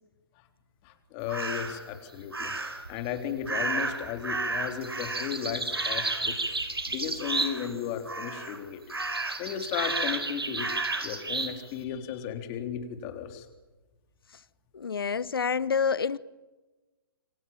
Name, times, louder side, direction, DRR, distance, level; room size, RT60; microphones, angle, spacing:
voice 1, 0.8-2.5 2.9-6.4 6.9-8.8 9.4-10.7 11.0-13.5, left 9 dB, 30° left, 3.7 m, -35 dB
sound 1, 1.3-1.8 2.3-2.9 3.5-7.8 8.1-8.6 8.9-11.6, right 3 dB, 85° right, 4.8 m, -32 dB
voice 2, 14.7-16.2, left 6 dB, 70° left, 0.9 m, -27 dB
28.0 x 24.0 x 7.3 m
figure-of-eight pair, 125°, 13 cm